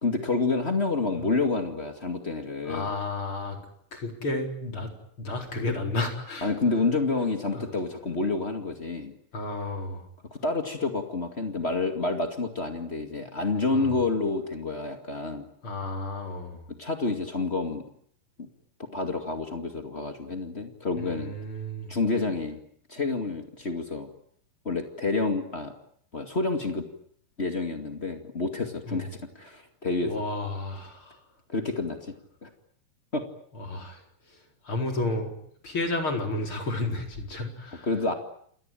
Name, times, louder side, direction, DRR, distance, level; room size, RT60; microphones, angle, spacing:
voice 1, 0.0-2.9 6.4-9.1 10.3-15.5 16.8-17.8 18.4-18.5 18.9-21.3 21.9-22.6 22.9-24.1 24.6-25.7 26.1-26.8 27.4-29.1 29.3-30.1 31.5-32.1 32.4-32.5 33.1-33.2 37.8-38.1, left 3 dB, 45° left, 5 dB, 0.7 m, -28 dB
voice 2, 2.6-3.6 3.9-4.9 5.2-6.5 7.5-7.7 9.3-10.1 13.7-14.0 15.6-16.7 21.0-21.9 28.9-29.1 30.0-31.2 33.5-34.0 34.3-34.4 34.6-35.3 35.6-37.9, left 2 dB, 30° left, 3 dB, 4.9 m, -32 dB
28.5 x 20.5 x 9.1 m, 0.65 s
omnidirectional pair, 5.1 m